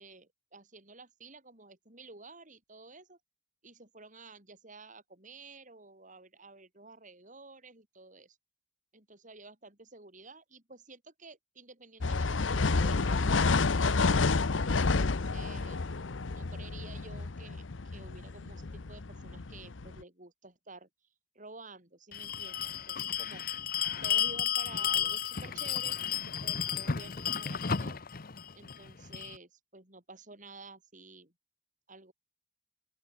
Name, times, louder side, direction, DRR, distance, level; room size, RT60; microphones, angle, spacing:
voice 1, 0.0-3.2 3.6-8.4 8.9-13.7 14.8-15.8 16.3-20.9 21.3-23.4 24.0-26.0 26.2-28.0 28.5-31.3 31.9-32.1, right 3 dB, 40° right, 7.7 m, -52 dB
sound 1, 12.0-20.0, left 3 dB, 85° left, 0.9 m, -29 dB
Bell, 22.1-29.4, left 8 dB, 50° left, 0.9 m, -33 dB
open air
head